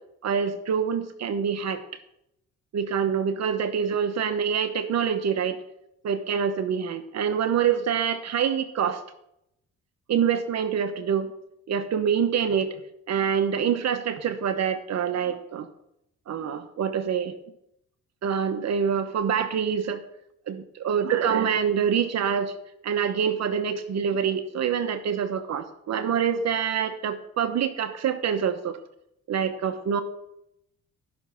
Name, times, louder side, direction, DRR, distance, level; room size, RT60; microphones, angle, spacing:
voice 1, 0.2-1.8 2.7-5.6 6.0-9.0 10.1-11.3 11.7-12.8 13.1-15.7 16.3-17.3 18.2-20.0 20.5-22.5 22.8-28.8 29.3-30.0, right 7 dB, 60° right, 10 dB, 1.0 m, -26 dB
13.0 x 6.1 x 5.7 m, 0.79 s
cardioid pair, 90°, 30 cm